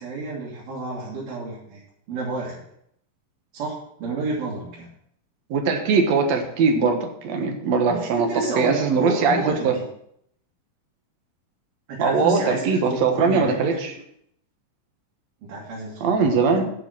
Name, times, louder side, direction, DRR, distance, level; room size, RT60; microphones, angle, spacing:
voice 1, 0.0-1.8 2.1-2.6 3.5-4.9 7.9-9.8 11.9-13.8 15.4-16.6, right 3 dB, 90° right, -6 dB, 4.0 m, -30 dB
voice 2, 5.5-8.3 8.6-9.7 12.0-13.9 16.0-16.7, right 4 dB, 60° right, 4 dB, 2.2 m, -21 dB
10.5 x 5.8 x 6.1 m, 0.72 s
omnidirectional pair, 4.1 m